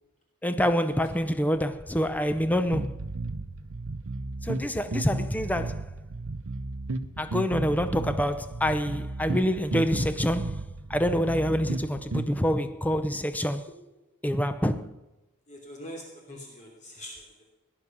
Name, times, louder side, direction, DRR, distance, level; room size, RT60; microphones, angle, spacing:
voice 1, 0.4-2.9 4.4-5.8 7.2-10.6 10.9-13.6 14.2-14.9, equal, 5° left, 0.7 m, -26 dB
sound 1, 2.7-12.3, right 2 dB, 70° right, 0.8 m, -34 dB
voice 2, 15.5-17.5, equal, 35° left, 3.1 m, -44 dB
18.0 x 11.0 x 6.1 m
head